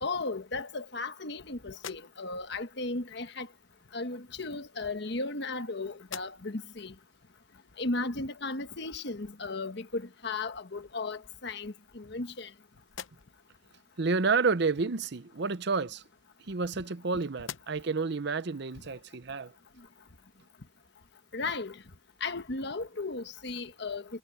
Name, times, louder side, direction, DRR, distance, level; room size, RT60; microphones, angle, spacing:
voice 1, 0.0-3.5 3.9-6.9 7.8-12.5 16.7-16.8 21.3-21.8 22.2-24.2, left 3 dB, 60° left, 1.3 m, -35 dB
sound 1, 1.7-2.5 3.7-3.8 4.8-5.6 6.0-6.7 7.2-7.3 10.0-10.1 10.5-11.2 11.8-12.5 12.8-13.6 15.6-17.0 17.4-18.0, left 8 dB, 85° left, 0.8 m, -48 dB
voice 2, 14.0-16.0 16.5-19.5, right 4 dB, 60° right, 0.7 m, -30 dB
head